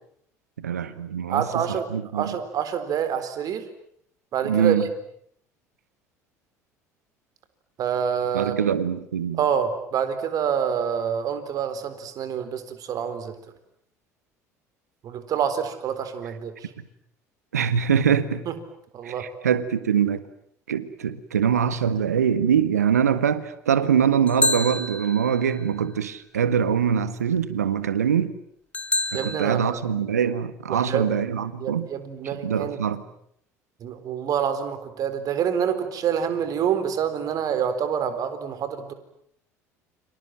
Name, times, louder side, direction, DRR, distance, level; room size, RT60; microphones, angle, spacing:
voice 1, 0.6-2.4 4.4-4.9 8.3-9.4 17.5-18.4 19.0-20.2 20.7-28.3 29.1-31.9 32.2-33.0, right 8 dB, 80° right, 1.6 m, -23 dB
voice 2, 1.3-1.9 2.1-3.6 4.3-4.9 7.8-8.5 9.4-13.3 15.0-16.7 18.5-18.6 18.9-19.2 29.1-29.8 30.7-31.0 31.6-32.8 33.8-38.9, right 8 dB, 45° right, 4.1 m, -27 dB
sound 1, 24.3-25.6 28.7-29.5, left 2 dB, 15° left, 2.9 m, -27 dB
30.0 x 25.5 x 7.7 m
figure-of-eight pair, 65°, 8 cm